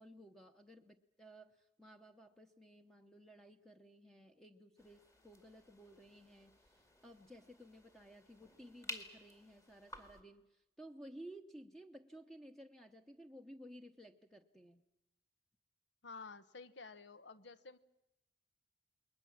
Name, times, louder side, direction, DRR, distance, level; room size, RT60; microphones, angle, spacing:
voice 1, 0.0-14.8, right 1 dB, ahead, 5 dB, 0.9 m, -56 dB
sound 1, 4.8-10.2, left 1 dB, 20° left, 2.2 m, -54 dB
voice 2, 16.0-17.8, left 4 dB, 80° left, 14 dB, 1.1 m, -52 dB
28.5 x 21.5 x 7.3 m, 0.91 s
head